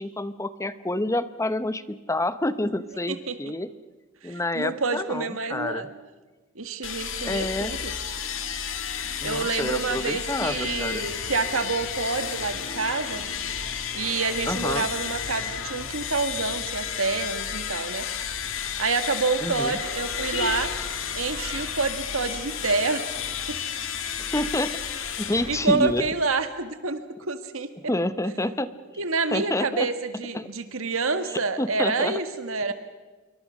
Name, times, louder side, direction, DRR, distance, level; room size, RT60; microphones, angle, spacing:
voice 1, 0.0-3.7 4.2-5.9 7.2-7.8 9.2-11.1 14.5-14.9 19.4-19.8 24.2-24.7 25.2-26.1 27.8-28.7 29.3-29.9 30.3-30.5 31.3-32.2, left 1 dB, 15° left, 13 dB, 0.8 m, -28 dB
voice 2, 4.2-5.9 6.6-7.9 9.2-13.2 13.9-18.1 18.8-20.7 21.2-23.2 23.5-23.6 25.5-27.7 29.0-32.7, right 4 dB, 85° right, 9 dB, 1.9 m, -28 dB
sound 1, 6.8-26.3, left 7 dB, 70° left, 2.0 m, -32 dB
26.5 x 23.5 x 6.5 m, 1.2 s
head